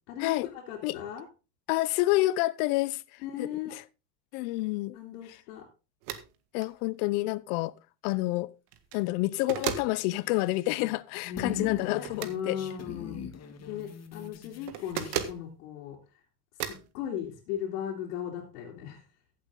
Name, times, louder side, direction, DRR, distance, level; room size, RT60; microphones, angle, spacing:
voice 1, 0.1-1.3 3.2-3.7 4.9-5.7 11.2-13.3 13.6-16.0 16.6-19.0, left 9 dB, 90° left, 3.0 m, -37 dB
voice 2, 1.7-3.8 4.3-5.0 6.5-7.7 8.0-8.5 8.9-12.6, left 19 dB, 70° left, 0.8 m, -29 dB
sound 1, 6.0-6.3 6.6-6.7 8.7-9.0 9.5-9.9 12.0-12.4 14.7-15.4 16.6-16.9, right 10 dB, 80° right, 1.8 m, -34 dB
sound 2, 9.3-11.0 11.2-15.3, left 8 dB, 35° left, 1.9 m, -45 dB
15.0 x 7.9 x 3.8 m
supercardioid pair, 130°, 46 cm